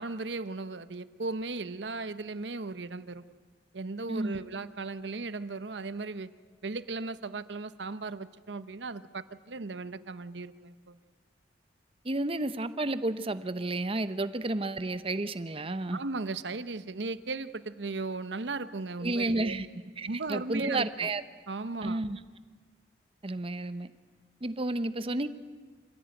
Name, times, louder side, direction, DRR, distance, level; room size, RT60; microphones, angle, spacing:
voice 1, 0.0-3.2 3.7-6.3 6.6-11.0 15.9-19.6 20.0-21.1 21.5-22.0, right 3 dB, 75° right, 13 dB, 0.9 m, -36 dB
voice 2, 4.1-4.4 12.0-16.0 19.0-19.7 20.0-21.2 21.8-22.2 23.2-23.9 24.4-25.3, right 2 dB, 30° right, 12 dB, 0.9 m, -31 dB
26.0 x 16.0 x 9.1 m, 1.4 s
head